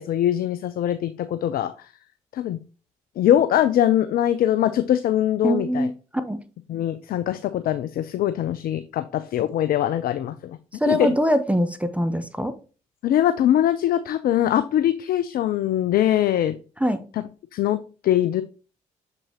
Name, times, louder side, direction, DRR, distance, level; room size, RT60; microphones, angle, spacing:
voice 1, 0.0-1.9 2.3-2.6 3.2-5.9 6.7-10.6 10.9-11.1 13.0-16.5 17.1-17.2 17.5-18.4, left 11 dB, 55° left, 12 dB, 0.5 m, -22 dB
voice 2, 5.4-6.4 10.8-12.5 16.8-17.0, equal, 5° right, 9 dB, 0.8 m, -23 dB
6.9 x 5.3 x 2.9 m, 0.36 s
figure-of-eight pair, 40°, 18 cm